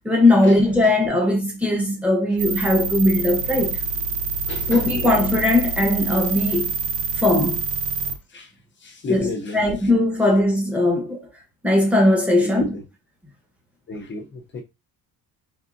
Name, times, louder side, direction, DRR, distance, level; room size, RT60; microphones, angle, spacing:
voice 1, 0.0-3.8 4.7-6.7 7.2-7.6 9.1-11.2 11.6-12.8, left 1 dB, 5° right, 1.0 m, -19 dB
sound 1, 2.4-8.2, right 4 dB, 90° right, 0.7 m, -26 dB
voice 2, 4.5-5.1 8.3-8.5 8.8-9.9 12.4-12.8 13.9-14.6, left 2 dB, 30° left, 0.6 m, -32 dB
3.6 x 3.3 x 2.5 m
cardioid pair, 165°, 39 cm